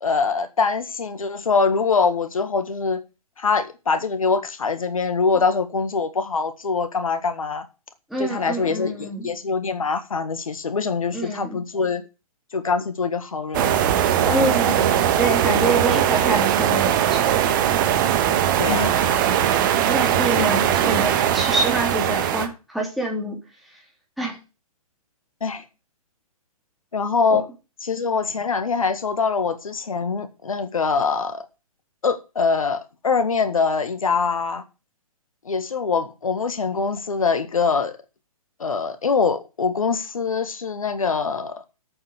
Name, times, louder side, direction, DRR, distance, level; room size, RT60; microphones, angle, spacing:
voice 1, 0.0-3.0 3.4-7.7 8.2-12.0 12.5-13.9 14.2-14.5 18.6-19.0 25.4-25.6 26.9-27.5 27.8-31.5 32.0-34.6 35.5-38.0 38.6-41.6, left 5 dB, 65° left, 11 dB, 1.7 m, -23 dB
voice 2, 8.1-9.2 11.1-11.6 14.3-14.9 15.2-17.2 18.7-18.9 19.8-23.4 24.2-24.4 27.3-27.4, right 1 dB, ahead, -2 dB, 3.3 m, -26 dB
sound 1, 13.5-22.5, right 10 dB, 35° right, 1.3 m, -20 dB
8.7 x 7.2 x 8.1 m, 0.31 s
figure-of-eight pair, 125°, 19 cm